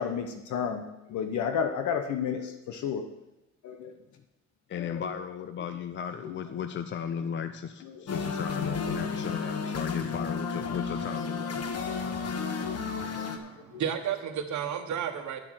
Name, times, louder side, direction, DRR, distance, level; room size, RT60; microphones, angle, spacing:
voice 1, 0.0-3.1 3.6-3.9 4.8-5.1 9.1-9.2 12.6-12.8 13.4-13.8, left 7 dB, 75° left, 6 dB, 0.9 m, -32 dB
voice 2, 4.7-11.6, left 8 dB, 40° left, 10 dB, 0.5 m, -35 dB
sound 1, 8.1-13.4, left 5 dB, 55° left, 1.3 m, -32 dB
voice 3, 13.3-15.4, right 8 dB, 70° right, 5 dB, 1.2 m, -32 dB
10.0 x 7.2 x 6.4 m, 1.0 s
cardioid pair, 90°, 30 cm